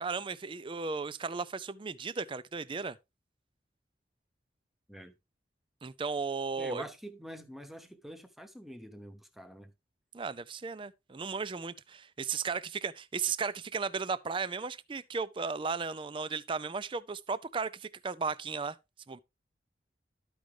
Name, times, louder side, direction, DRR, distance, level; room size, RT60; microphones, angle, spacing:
voice 1, 0.0-3.0 5.8-6.8 10.1-18.8 19.1-19.2, right 5 dB, 30° right, 0.4 m, -35 dB
voice 2, 6.6-9.7, equal, ahead, 0.9 m, -46 dB
12.5 x 5.1 x 3.2 m
head